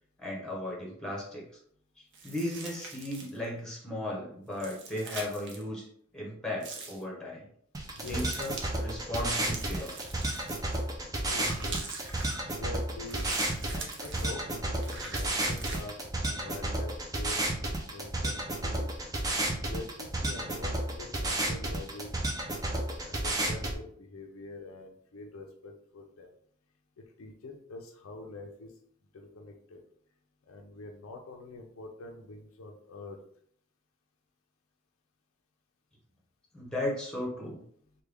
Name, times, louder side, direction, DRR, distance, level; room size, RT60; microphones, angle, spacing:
voice 1, 0.2-1.4 2.2-5.8 6.1-7.5 8.0-9.9 36.5-37.6, left 1 dB, 5° left, -3 dB, 1.0 m, -36 dB
sound 1, 2.1-3.4 4.5-5.6 6.6-7.0 8.0-8.7 9.4-10.8 11.4-12.4 13.1-14.3 14.8-15.8, right 4 dB, 55° right, 0.6 m, -43 dB
sound 2, 7.7-23.7, right 1 dB, 15° right, 0.4 m, -32 dB
voice 2, 7.9-8.2 11.2-11.8 12.3-13.3 13.7-17.4 17.9-18.9 19.5-22.1 22.6-26.3 27.2-28.7 29.1-29.8 30.5-33.2, left 2 dB, 70° left, 3 dB, 0.5 m, -45 dB
3.3 x 2.2 x 3.4 m, 0.62 s
head